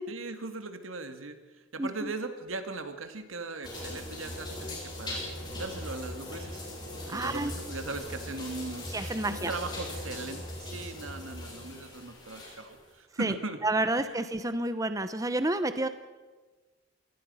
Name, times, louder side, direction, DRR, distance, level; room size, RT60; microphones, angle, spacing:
voice 1, 0.1-1.4 1.7-6.6 7.1-8.9 9.3-13.6 13.9-14.2, right 3 dB, 90° right, 8 dB, 2.1 m, -39 dB
voice 2, 1.8-2.1 7.1-7.5 8.9-9.5 13.2-13.4 13.6-15.9, right 2 dB, 15° right, 11 dB, 0.9 m, -30 dB
sound 1, 3.6-12.8, left 1 dB, 20° left, 7.2 m, -40 dB
27.5 x 19.5 x 5.6 m, 1.3 s
head